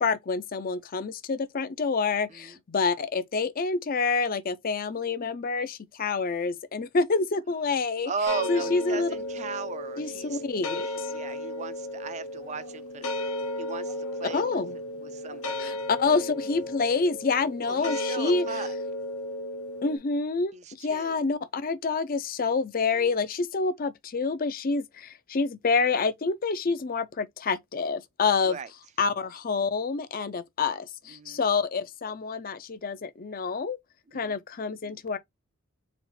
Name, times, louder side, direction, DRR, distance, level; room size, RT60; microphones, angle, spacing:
voice 1, 0.0-8.1 8.5-9.1 10.0-11.1 14.3-14.8 15.6-18.4 19.8-28.6 29.0-33.8 34.1-35.2, left 4 dB, 40° left, 0.5 m, -27 dB
voice 2, 8.0-10.4 10.8-13.1 13.6-14.6 15.0-15.8 17.6-18.8 20.5-21.2 28.4-28.7 31.1-31.4 34.1-34.4, right 5 dB, 30° right, 0.4 m, -37 dB
sound 1, 8.3-20.0, left 1 dB, 90° left, 1.1 m, -34 dB
4.2 x 2.4 x 4.2 m
head